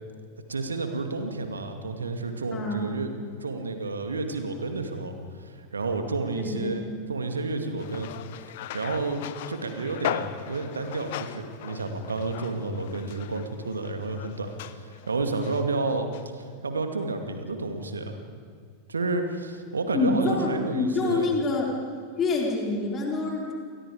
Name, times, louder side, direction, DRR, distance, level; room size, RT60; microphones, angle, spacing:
voice 1, 0.5-3.1 3.4-8.1 8.7-18.2 18.9-21.3, right 3 dB, 75° right, 6 dB, 2.3 m, -31 dB
voice 2, 2.5-2.9 6.3-6.9 19.9-21.7 22.2-23.5, left 3 dB, 25° left, -1 dB, 4.0 m, -26 dB
sound 1, 7.8-15.7 16.1-16.2, left 12 dB, 55° left, 1.0 m, -38 dB
29.0 x 23.0 x 5.0 m, 2.1 s
figure-of-eight pair, 90°, 0 cm